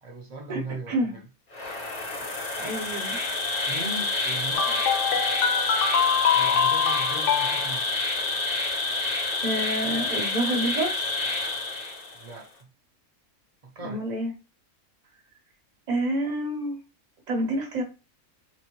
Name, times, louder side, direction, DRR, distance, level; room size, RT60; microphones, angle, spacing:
voice 1, 0.0-1.2 3.7-5.0 6.3-8.0 12.1-12.7 13.6-14.0, right 3 dB, 50° right, 0.4 m, -38 dB
voice 2, 0.9-1.2 2.6-3.2 8.9-9.0 9.4-11.0 13.8-14.3 15.9-16.8 17.3-17.8, right 1 dB, 35° right, 1.0 m, -28 dB
Insect, 1.5-12.3, left 3 dB, 35° left, 0.7 m, -28 dB
sound 1, 4.5-7.7, left 7 dB, 65° left, 0.8 m, -24 dB
3.9 x 2.2 x 3.0 m
omnidirectional pair, 1.5 m